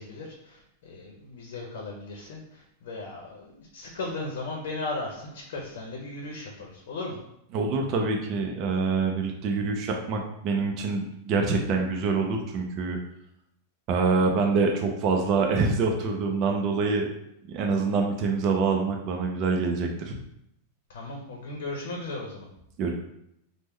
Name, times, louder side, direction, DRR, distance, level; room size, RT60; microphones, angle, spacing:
voice 1, 0.0-7.2 20.9-22.5, left 2 dB, 75° left, 0 dB, 0.7 m, -36 dB
voice 2, 7.5-13.0 13.9-17.1 17.5-20.1 22.8-22.9, right 4 dB, 35° right, 2 dB, 0.4 m, -25 dB
3.1 x 2.0 x 3.5 m, 0.77 s
supercardioid pair, 160°, 0 cm